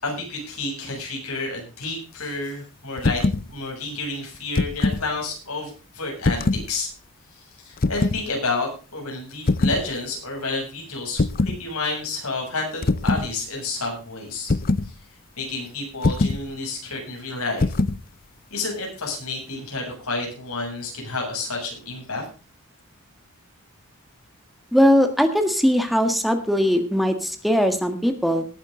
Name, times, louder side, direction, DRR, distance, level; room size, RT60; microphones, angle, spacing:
voice 1, 0.0-6.9 7.6-14.5 15.4-17.7 18.5-22.3, left 3 dB, 85° left, 1 dB, 7.6 m, -30 dB
sound 1, 3.0-3.5 4.3-5.1 6.2-6.7 7.8-8.2 9.5-9.8 11.2-11.6 12.8-13.3 14.5-14.9 16.0-16.4 17.6-18.0, left 3 dB, 40° left, 0.6 m, -22 dB
voice 2, 24.7-28.4, equal, ahead, 7 dB, 1.6 m, -20 dB
18.5 x 9.5 x 3.8 m, 0.35 s
head